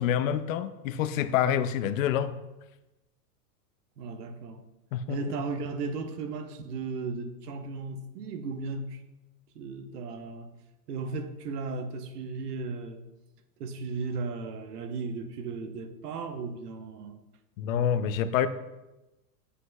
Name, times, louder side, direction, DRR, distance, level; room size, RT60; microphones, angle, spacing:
voice 1, 0.0-2.3 4.9-5.2 17.6-18.5, left 9 dB, 55° left, 12 dB, 0.5 m, -27 dB
voice 2, 4.0-4.6 5.1-9.0 9.5-10.5 10.9-13.0 13.6-17.2, right 4 dB, 70° right, 7 dB, 1.0 m, -35 dB
8.2 x 7.6 x 2.2 m, 1.0 s
hypercardioid pair, 125°, 48 cm